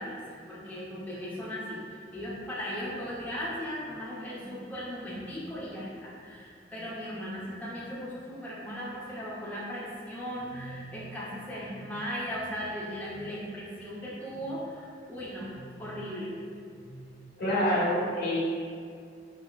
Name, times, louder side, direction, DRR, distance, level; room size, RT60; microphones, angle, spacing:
voice 1, 0.0-16.4 16.7-17.1, equal, 10° left, -8 dB, 0.5 m, -37 dB
voice 2, 17.4-18.4, equal, 65° left, -11 dB, 0.8 m, -27 dB
4.3 x 2.1 x 2.3 m, 2.2 s
head